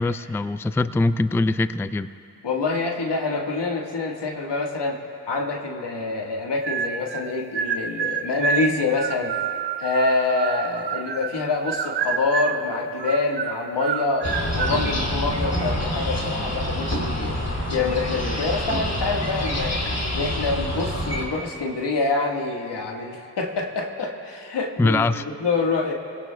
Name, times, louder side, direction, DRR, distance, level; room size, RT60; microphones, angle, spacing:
voice 1, 0.0-2.1 24.8-25.2, left 2 dB, 5° left, 13 dB, 0.3 m, -22 dB
voice 2, 2.4-5.0 5.3-9.3 9.8-17.4 17.7-19.8 20.1-25.9, left 3 dB, 85° left, 1 dB, 1.6 m, -26 dB
sound 1, 6.6-7.2 7.5-11.4 11.7-12.6 13.0-14.8, right 6 dB, 75° right, 0.8 m, -28 dB
sound 2, 14.2-21.3, left 1 dB, 40° left, 2.8 m, -26 dB
29.5 x 18.0 x 2.3 m, 2.9 s
cardioid pair, 45°, 41 cm